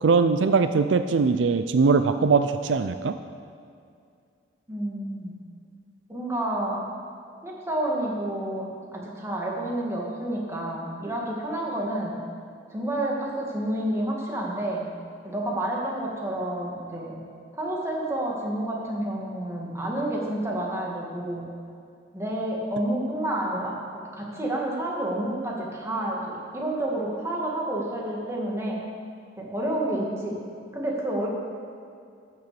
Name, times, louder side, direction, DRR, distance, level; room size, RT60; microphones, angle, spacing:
voice 1, 0.0-3.2, right 4 dB, 75° right, 10 dB, 0.4 m, -21 dB
voice 2, 4.7-5.4 6.1-6.8 7.4-12.2 12.7-14.9 15.2-17.2 17.6-21.5 22.1-23.8 24.1-28.8 29.4-30.4 30.7-31.3, right 1 dB, 15° right, -3 dB, 2.0 m, -29 dB
13.0 x 6.7 x 6.8 m, 2.4 s
head